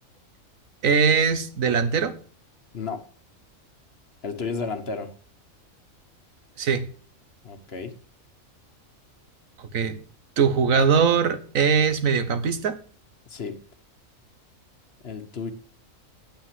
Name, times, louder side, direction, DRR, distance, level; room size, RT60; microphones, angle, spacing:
voice 1, 0.8-2.2 6.6-6.9 9.6-10.0 10.4-12.8, right 6 dB, 80° right, 1.5 m, -21 dB
voice 2, 4.2-5.1 7.4-7.9 13.3-13.6 15.0-15.5, left 4 dB, 50° left, 1.4 m, -32 dB
8.9 x 8.8 x 7.5 m
omnidirectional pair, 1.4 m